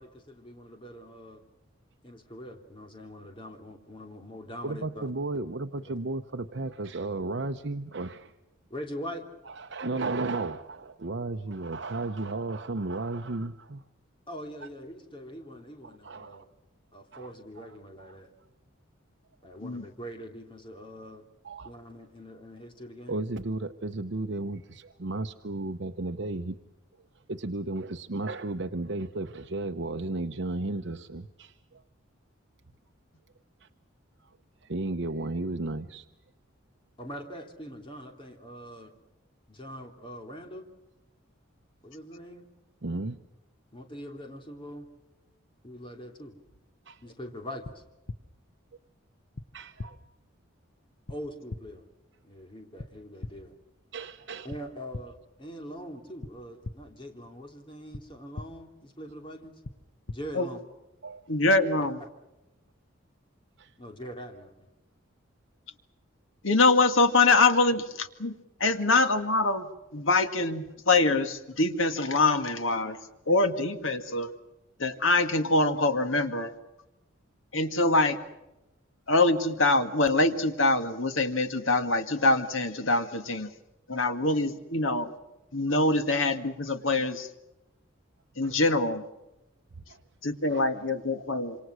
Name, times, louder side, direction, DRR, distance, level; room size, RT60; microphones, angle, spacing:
voice 1, 0.0-1.4 2.0-5.1 5.8-5.9 8.7-9.2 14.3-16.5 16.9-18.3 19.4-21.2 21.6-23.2 37.0-38.9 39.5-40.7 41.8-42.5 43.7-44.9 45.6-46.3 47.0-47.8 51.1-51.8 52.2-53.6 54.4-59.6 60.1-60.6 61.8-61.9 63.8-64.7, equal, 25° left, 3 dB, 3.1 m, -43 dB
voice 2, 4.6-8.3 9.5-13.8 16.0-16.4 17.1-17.3 17.6-17.7 18.0-18.2 21.4-21.7 23.1-26.6 27.3-31.8 33.6-33.7 34.2-34.3 34.6-36.0 42.8-43.2 46.9-47.0 49.5-50.0 53.9-54.5 61.0-61.2 63.6-63.7 68.6-68.8 88.4-88.6 89.9-90.0 90.4-90.7, right 2 dB, 60° right, 6 dB, 0.9 m, -34 dB
sound 1, 47.6-47.7 48.1-48.2 49.3-49.4 49.8-49.9 51.1-51.2 51.5-51.6 52.8-52.9 53.2-53.3 54.5-54.6 54.9-55.0 56.2-56.3 56.6-56.7 57.9-58.0 58.3-58.4 59.6-59.7 60.1-60.2, left 2 dB, 60° left, 1.0 m, -37 dB
voice 3, 61.3-62.0 66.4-68.4 68.6-69.7 69.9-73.0 73.3-74.3 74.8-76.5 77.5-78.2 79.1-83.5 83.9-85.1 85.5-87.3 88.4-89.0 90.2-91.6, left 3 dB, 80° left, 8 dB, 1.9 m, -24 dB
27.0 x 26.5 x 6.3 m, 0.98 s
head